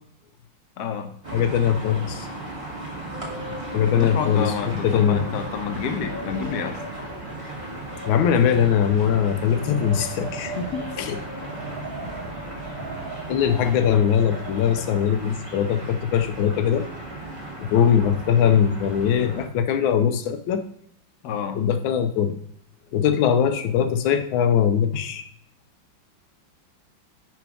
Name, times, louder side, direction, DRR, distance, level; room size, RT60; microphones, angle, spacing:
voice 1, 0.8-1.1 3.9-6.8 10.4-10.8 21.2-21.6, left 6 dB, 65° left, 6 dB, 1.2 m, -29 dB
sound 1, 1.2-19.5, right 2 dB, 20° right, 1.3 m, -36 dB
voice 2, 1.3-2.3 3.7-5.3 8.1-10.5 11.0-11.2 13.3-16.8 17.6-20.6 21.5-22.4 22.9-25.3, left 8 dB, 90° left, 8 dB, 1.4 m, -21 dB
Wind, 2.9-15.5, right 1 dB, 40° right, 0.9 m, -38 dB
6.1 x 5.1 x 3.5 m, 0.67 s
omnidirectional pair, 2.1 m